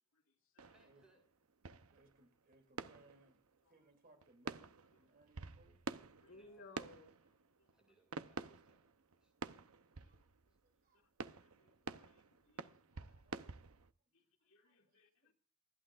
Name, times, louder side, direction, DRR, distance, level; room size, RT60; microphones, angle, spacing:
voice 1, 0.1-0.7 6.2-7.1 7.6-7.7 10.0-10.2 10.9-11.0 11.4-13.2 14.1-15.3, left 2 dB, 65° left, 2.5 m, -63 dB
sound 1, 0.6-3.9 4.2-10.7 11.2-13.9, right 4 dB, 70° right, 0.8 m, -50 dB
voice 2, 0.7-1.2 6.3-6.8 7.7-8.9 9.2-9.3 10.7-10.8, right 1 dB, 5° right, 7.1 m, -72 dB
voice 3, 1.9-5.8 7.6-7.7 8.3-8.4 10.0-10.3 10.6-14.2 14.6-15.3, right 2 dB, 45° right, 3.1 m, -70 dB
27.5 x 11.5 x 2.5 m
head